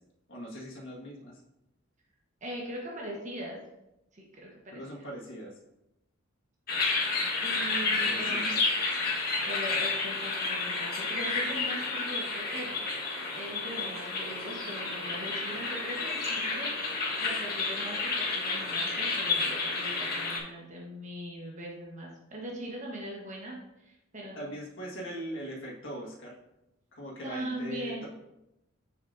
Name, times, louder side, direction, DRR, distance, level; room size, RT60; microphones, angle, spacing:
voice 1, 0.3-1.4 4.7-5.5 8.0-8.7 9.0-9.1 24.4-26.3 26.9-28.1, right 1 dB, 60° left, -3 dB, 1.7 m, -41 dB
voice 2, 2.4-3.6 4.1-5.1 7.4-8.6 9.4-16.7 17.2-24.4 27.2-28.1, right 1 dB, 35° right, -2 dB, 1.3 m, -40 dB
sound 1, 6.7-20.4, left 3 dB, 45° left, 1.5 m, -31 dB
7.3 x 6.8 x 2.7 m, 0.90 s
head